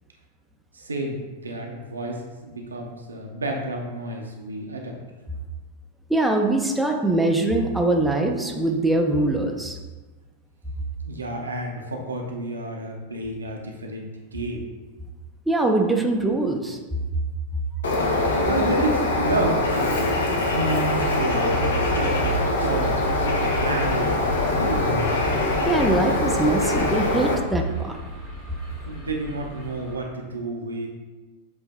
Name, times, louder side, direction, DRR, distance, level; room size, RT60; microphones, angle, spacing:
voice 1, 0.7-5.0 11.0-14.7 18.2-23.0 23.6-24.9 28.9-30.9, right 2 dB, 75° right, 1 dB, 0.6 m, -30 dB
voice 2, 6.1-9.8 15.5-16.8 25.7-28.0, right 2 dB, 5° right, 2 dB, 0.4 m, -22 dB
Bird, 17.8-27.3, left 2 dB, 65° left, 0.6 m, -23 dB
sound 1, 20.6-29.9, right 3 dB, 35° left, 1.5 m, -33 dB
7.5 x 2.6 x 2.2 m, 1.2 s
figure-of-eight pair, 90°, 0 cm